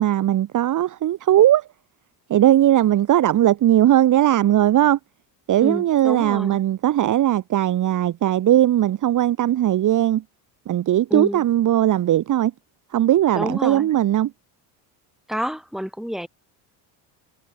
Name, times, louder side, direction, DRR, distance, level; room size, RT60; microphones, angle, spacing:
voice 1, 0.0-1.6 2.3-5.0 5.5-10.2 10.7-12.5 12.9-14.3, right 12 dB, 45° right, 1.7 m, -18 dB
voice 2, 5.6-6.6 11.1-11.4 13.3-13.9 15.3-16.3, equal, ahead, 6.7 m, -28 dB
cardioid pair, 125°, 43 cm